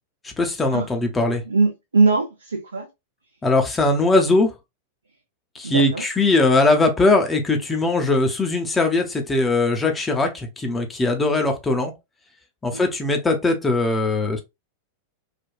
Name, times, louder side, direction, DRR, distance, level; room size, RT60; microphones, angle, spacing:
voice 1, 0.2-1.4 3.4-4.5 5.5-11.9 12.6-14.4, left 2 dB, 15° left, 0.6 m, -20 dB
voice 2, 1.5-2.9 5.6-6.0 12.7-12.8, right 3 dB, 75° right, 0.5 m, -21 dB
3.4 x 2.3 x 2.3 m
figure-of-eight pair, 90°, 0 cm